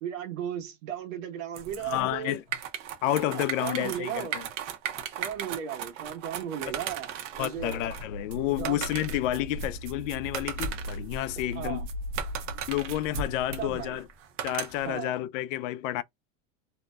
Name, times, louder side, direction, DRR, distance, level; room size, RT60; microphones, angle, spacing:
voice 1, 0.0-2.4 3.3-4.4 5.2-7.8 8.6-8.8 11.5-11.8 13.6-14.0 14.8-15.1, right 9 dB, 85° right, 1.2 m, -36 dB
sound 1, 1.6-15.0, right 7 dB, 65° right, 0.8 m, -37 dB
voice 2, 1.8-2.4 3.0-4.4 7.4-11.9 12.7-14.0 14.4-16.0, left 14 dB, 80° left, 0.5 m, -30 dB
sound 2, 7.6-13.8, equal, 45° left, 0.8 m, -40 dB
2.7 x 2.1 x 2.2 m
supercardioid pair, 160°, 38 cm